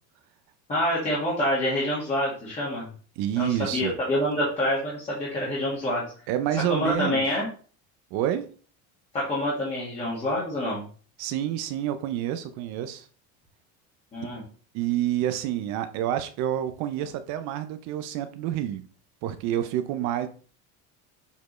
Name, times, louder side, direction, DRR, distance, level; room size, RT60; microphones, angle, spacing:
voice 1, 0.7-2.9 3.3-6.0 6.7-7.5 9.1-10.8 14.1-14.4, left 1 dB, 20° left, 1.7 m, -27 dB
voice 2, 3.2-3.9 6.3-7.4 8.1-8.5 11.2-13.1 14.7-18.8 19.2-20.3, right 11 dB, 55° right, 0.6 m, -28 dB
7.1 x 4.4 x 3.1 m
cardioid pair, 180°, 34 cm